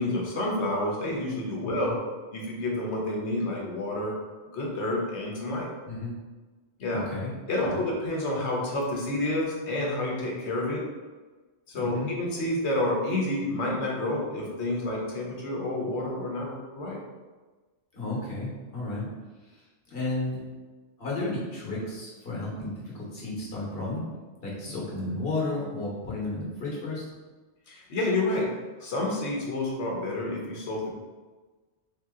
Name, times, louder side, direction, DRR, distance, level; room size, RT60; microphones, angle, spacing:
voice 1, 0.0-2.0 2.3-4.1 4.5-5.7 6.8-7.0 7.5-10.8 11.7-17.0 27.7-28.5 28.8-30.9, left 1 dB, 75° left, -2 dB, 1.2 m, -29 dB
voice 2, 1.6-1.9 5.9-6.1 6.9-7.3 7.6-7.8 11.7-12.1 17.9-19.1 19.5-19.6 19.9-20.4 21.0-24.0 24.4-27.0, left 2 dB, 55° left, -5 dB, 1.5 m, -33 dB
3.6 x 2.9 x 3.7 m, 1.3 s
omnidirectional pair, 1.1 m